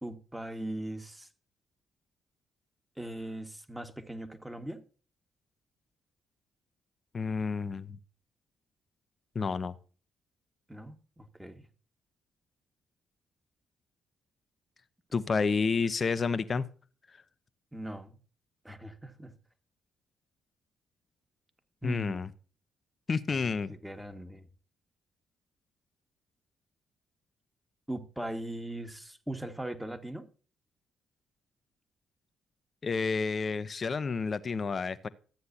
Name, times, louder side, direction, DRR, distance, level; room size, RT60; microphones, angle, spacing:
voice 1, 0.0-1.3 3.0-4.8 10.7-11.7 17.7-18.2 18.6-19.3 21.8-22.3 23.3-24.5 27.9-30.3, right 1 dB, 10° right, 1.8 m, -40 dB
voice 2, 7.1-8.0 9.3-9.7 15.1-16.6 21.8-22.3 23.1-23.7 32.8-35.1, left 5 dB, 45° left, 0.9 m, -30 dB
13.5 x 9.3 x 2.8 m
hypercardioid pair, 45°, 0 cm